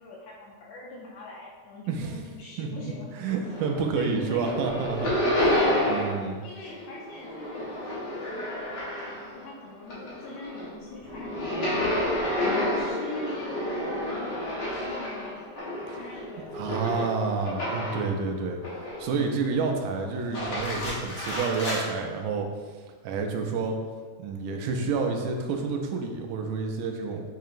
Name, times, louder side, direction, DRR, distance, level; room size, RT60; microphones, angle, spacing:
voice 1, 0.0-3.3 4.0-4.7 5.7-15.5 15.9-17.1, left 2 dB, 80° left, -3 dB, 1.7 m, -43 dB
voice 2, 1.9-2.2 2.6-2.7 3.2-6.4 15.9-16.0 16.5-18.6 19.0-22.5 23.0-23.8 24.2-27.2, right 4 dB, 85° right, 3 dB, 2.1 m, -29 dB
sound 1, 3.3-4.0 4.3-6.3 6.6-9.4 9.8-18.1 18.6-19.3 20.1-21.8, left 1 dB, 55° left, 1.1 m, -30 dB
7.1 x 2.8 x 2.5 m, 1.5 s
omnidirectional pair, 3.6 m